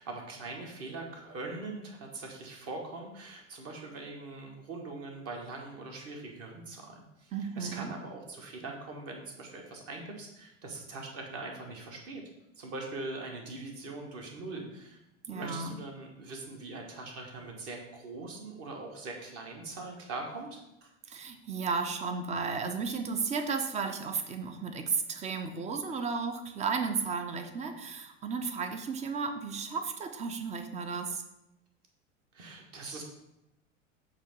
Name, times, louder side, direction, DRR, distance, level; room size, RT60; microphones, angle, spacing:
voice 1, 0.0-12.2 12.6-15.0 15.3-20.9 32.3-33.0, right 3 dB, 35° right, 2 dB, 1.5 m, -42 dB
voice 2, 7.3-7.9 15.3-15.8 21.1-31.2, right 5 dB, 20° right, 8 dB, 0.5 m, -34 dB
7.2 x 2.9 x 5.1 m, 0.87 s
figure-of-eight pair, 85°, 39 cm